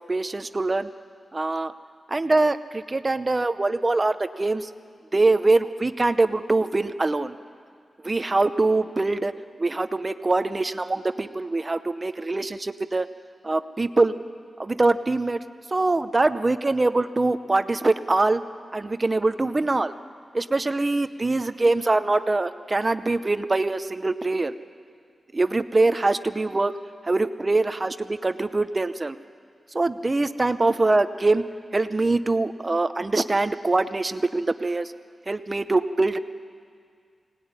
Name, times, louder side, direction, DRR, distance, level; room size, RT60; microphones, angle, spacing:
voice 1, 0.1-0.9 1.3-1.7 2.1-4.7 5.1-7.4 8.0-9.3 9.6-13.1 13.4-14.1 14.6-15.4 15.7-18.4 18.7-19.9 20.3-24.5 25.3-26.7 27.0-29.2 29.7-31.4 31.7-34.9 35.3-36.2, right 2 dB, 25° right, 11 dB, 0.7 m, -23 dB
24.0 x 19.0 x 9.7 m, 2.1 s
wide cardioid pair, 145°, 0 cm